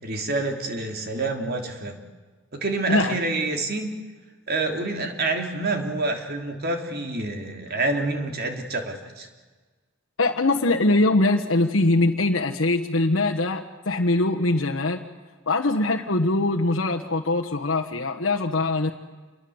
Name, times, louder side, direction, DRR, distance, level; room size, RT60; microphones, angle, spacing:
voice 1, 0.0-2.0 2.5-3.9 4.5-9.3, right 2 dB, 50° right, 4 dB, 3.3 m, -27 dB
voice 2, 10.2-15.0 15.5-18.9, left 2 dB, 75° left, 0 dB, 1.4 m, -22 dB
28.5 x 22.0 x 8.0 m, 1.3 s
head